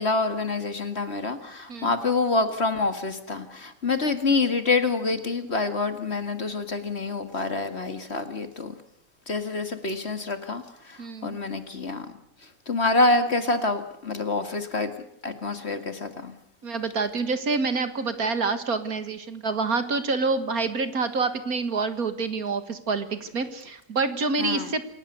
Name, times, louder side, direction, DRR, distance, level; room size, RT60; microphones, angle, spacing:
voice 1, 0.0-8.7 9.3-12.1 12.7-14.9 15.2-16.3 24.4-24.7, left 3 dB, 40° left, 9 dB, 2.1 m, -26 dB
voice 2, 11.0-11.4 16.6-24.9, right 4 dB, 55° right, 10 dB, 2.1 m, -27 dB
28.0 x 17.0 x 8.1 m, 0.74 s
omnidirectional pair, 1.8 m